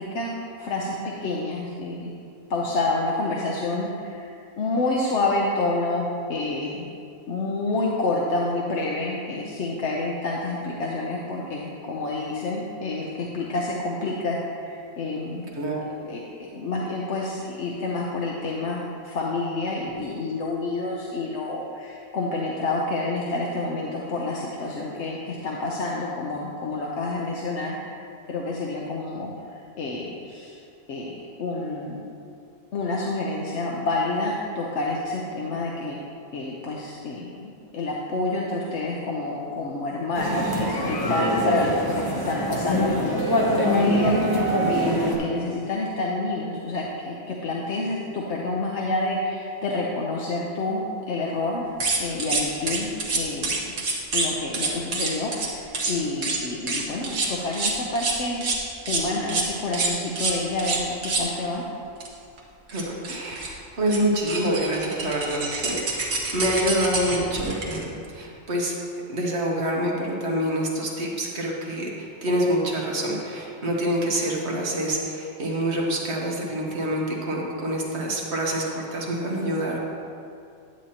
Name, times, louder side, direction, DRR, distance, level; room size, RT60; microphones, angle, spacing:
voice 1, 0.0-2.1 2.5-6.9 7.3-15.5 16.0-27.8 28.3-30.6 30.9-32.0 32.7-36.0 36.3-51.6 51.9-53.5 54.1-58.4 58.9-61.6, left 2 dB, 65° left, -3 dB, 1.0 m, -28 dB
voice 2, 15.5-15.9 62.7-68.7 69.1-79.8, right 1 dB, 60° right, -2 dB, 1.5 m, -26 dB
sound 1, 40.1-45.2, equal, 20° left, 0.9 m, -23 dB
sound 2, 51.8-54.3 54.5-55.5 55.7-55.9 56.2-56.4 56.7-58.6 58.9-59.0 59.3-59.5 59.7-61.3 62.0-62.1 62.4-62.5 62.7-63.5 63.9-64.0 64.3-67.8, right 3 dB, 85° right, 1.5 m, -26 dB
10.5 x 8.0 x 2.9 m, 2.5 s
omnidirectional pair, 1.3 m